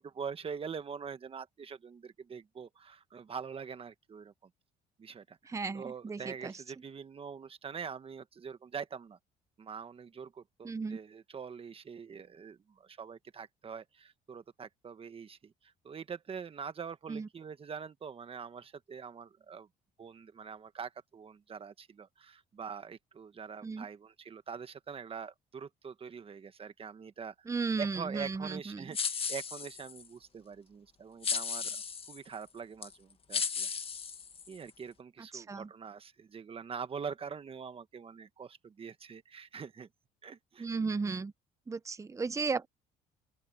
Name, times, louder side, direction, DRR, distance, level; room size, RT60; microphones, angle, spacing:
voice 1, 0.0-4.5 5.0-9.2 9.6-19.7 20.0-31.8 32.1-33.7 34.5-39.9 40.2-40.7, right 6 dB, 35° right, 1.5 m, -44 dB
voice 2, 5.5-6.5 10.6-11.0 17.1-17.3 23.6-23.8 27.5-28.9 35.3-35.7 40.6-41.3 41.7-42.7, right 4 dB, 20° right, 0.8 m, -35 dB
sound 1, 28.9-30.1 31.2-32.2 32.8-32.9 33.3-34.7, left 6 dB, 35° left, 1.6 m, -35 dB
open air
cardioid pair, 110°, 17 cm